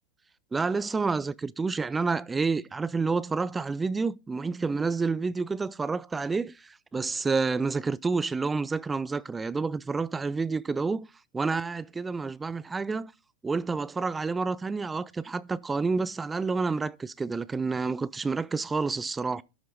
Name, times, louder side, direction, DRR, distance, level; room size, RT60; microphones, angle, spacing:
voice 1, 0.5-11.1 11.3-13.1 13.4-19.4, right 4 dB, 15° right, 0.4 m, -29 dB
12.5 x 6.0 x 3.9 m
figure-of-eight pair, 90°, 0 cm